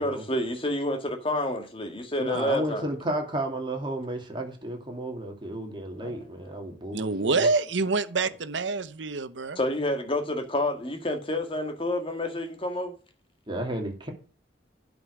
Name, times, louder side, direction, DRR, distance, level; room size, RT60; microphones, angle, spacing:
voice 1, 0.0-2.8 6.0-6.5 9.6-12.9, left 1 dB, 30° left, 1.7 m, -29 dB
voice 2, 2.2-7.5 13.5-14.1, right 1 dB, 25° right, 2.4 m, -33 dB
voice 3, 6.9-9.6, right 3 dB, 85° right, 0.9 m, -26 dB
11.0 x 5.2 x 6.2 m
head